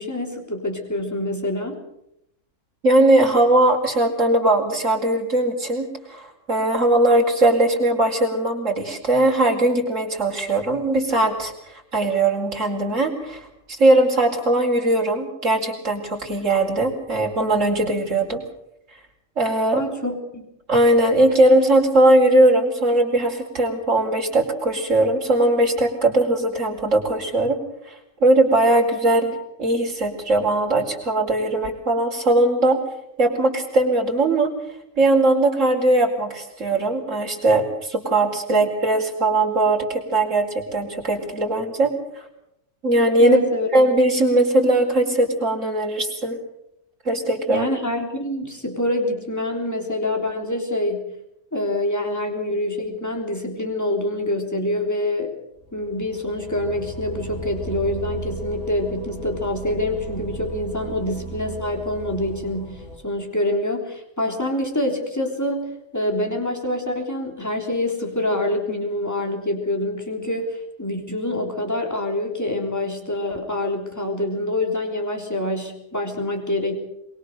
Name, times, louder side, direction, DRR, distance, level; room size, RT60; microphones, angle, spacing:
voice 1, 0.0-1.8 19.7-20.5 38.5-38.7 43.2-43.7 47.5-51.1 51.5-55.3 55.7-76.7, left 1 dB, 10° left, 2 dB, 3.7 m, -26 dB
voice 2, 2.8-18.4 19.4-19.8 20.7-27.6 27.8-32.8 33.2-34.5 35.0-41.9 42.8-43.4 43.7-46.4 47.0-47.7, right 1 dB, 55° right, 0 dB, 5.0 m, -19 dB
sound 1, 55.6-63.0, right 3 dB, 80° left, 5.6 m, -36 dB
23.0 x 22.5 x 6.7 m, 0.82 s
omnidirectional pair, 1.6 m